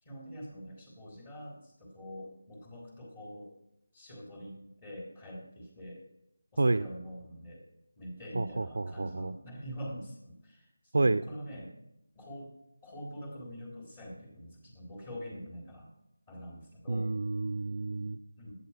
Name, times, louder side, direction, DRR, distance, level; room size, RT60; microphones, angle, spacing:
voice 1, 0.0-3.5 3.9-6.0 6.5-7.6 8.0-11.7 12.1-12.5 12.8-15.9 16.3-17.1 18.4-18.5, equal, 30° left, -1 dB, 3.2 m, -44 dB
voice 2, 8.3-9.3 10.9-11.2 16.9-18.2, right 2 dB, 65° right, 9 dB, 0.4 m, -29 dB
10.5 x 8.6 x 5.8 m, 0.85 s
figure-of-eight pair, 165°, 0 cm